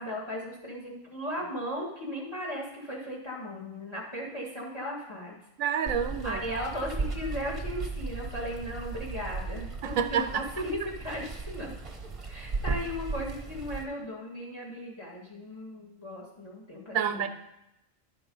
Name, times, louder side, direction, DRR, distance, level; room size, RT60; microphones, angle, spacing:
voice 1, 0.0-5.4 6.2-11.7 12.3-17.3, equal, 20° left, -4 dB, 1.7 m, -36 dB
voice 2, 5.6-6.4 9.8-10.4 16.9-17.3, right 8 dB, 90° right, 8 dB, 1.1 m, -28 dB
Water, 5.9-13.8, right 3 dB, 25° right, 1.0 m, -36 dB
11.5 x 4.8 x 5.4 m, 0.88 s
omnidirectional pair, 1.4 m